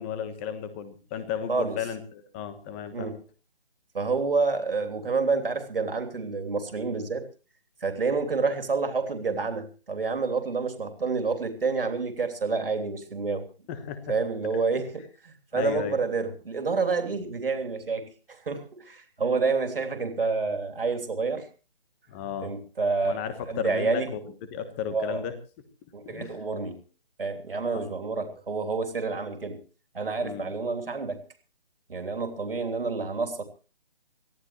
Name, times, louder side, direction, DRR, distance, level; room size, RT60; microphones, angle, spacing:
voice 1, 0.0-3.1 13.7-14.0 15.5-16.0 22.1-22.5 23.0-24.2 24.5-25.3 26.0-26.3 28.1-28.2 30.2-30.5, left 8 dB, 15° left, 11 dB, 1.2 m, -34 dB
voice 2, 2.9-3.2 3.9-7.2 7.8-13.4 14.1-21.5 22.4-23.2 23.5-24.1 24.9-25.2 25.9-26.8 27.2-29.6 29.9-31.2 31.9-33.4, right 4 dB, 70° right, 6 dB, 3.3 m, -28 dB
24.0 x 15.0 x 3.1 m, 0.35 s
figure-of-eight pair, 160°, 30 cm